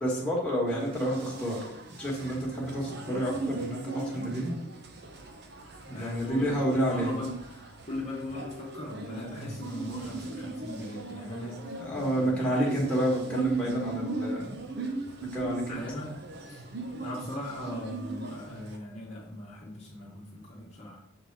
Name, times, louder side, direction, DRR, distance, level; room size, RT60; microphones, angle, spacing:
voice 1, 0.0-1.6 2.0-4.6 5.9-7.1 11.8-14.6 15.3-15.8, right 1 dB, 5° left, -5 dB, 1.6 m, -29 dB
sound 1, 0.7-18.8, right 3 dB, 50° right, 0.7 m, -38 dB
voice 2, 5.7-11.6 12.2-12.8 15.7-16.1 16.4-16.6 17.0-21.0, left 1 dB, 30° left, -5 dB, 1.1 m, -39 dB
7.1 x 3.9 x 4.7 m, 0.77 s
head